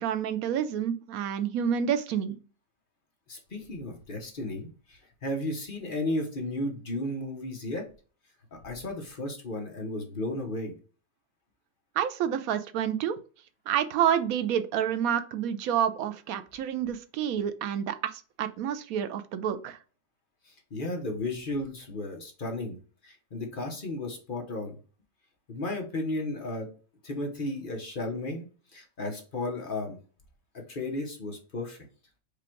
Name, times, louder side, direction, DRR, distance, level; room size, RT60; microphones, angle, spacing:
voice 1, 0.0-2.4 12.0-13.2 13.7-19.8, right 9 dB, 70° right, 11 dB, 1.0 m, -28 dB
voice 2, 3.3-7.9 8.5-10.7 20.5-22.8 23.0-24.8 25.5-26.7 27.0-28.5 28.7-30.0 30.5-31.8, left 2 dB, 40° left, 2 dB, 0.9 m, -34 dB
5.0 x 2.4 x 4.4 m, 0.37 s
omnidirectional pair, 1.7 m